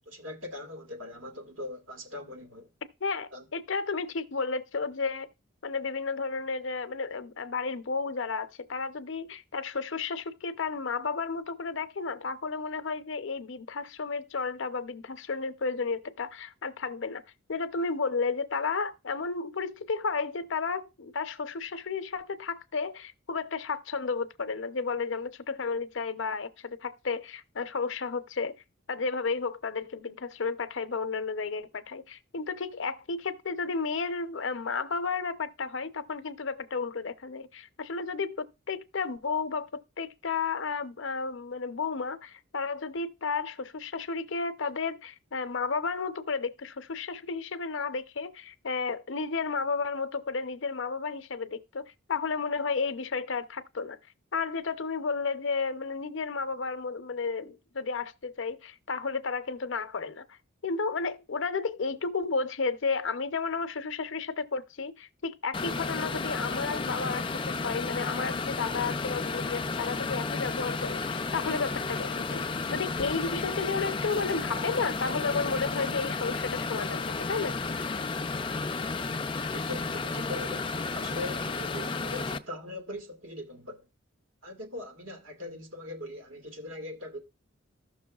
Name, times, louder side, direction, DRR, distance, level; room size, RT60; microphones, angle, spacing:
voice 1, 0.1-2.7 3.3-3.5 79.3-83.9 84.4-87.2, left 1 dB, 70° right, 2.0 m, -41 dB
voice 2, 3.0-5.3 5.6-17.2 17.5-28.5 28.9-54.0 54.3-60.3 60.6-77.6, left 4 dB, 65° left, 0.7 m, -32 dB
sound 1, 65.5-82.4, left 4 dB, 25° left, 0.4 m, -32 dB
14.5 x 6.1 x 2.3 m
head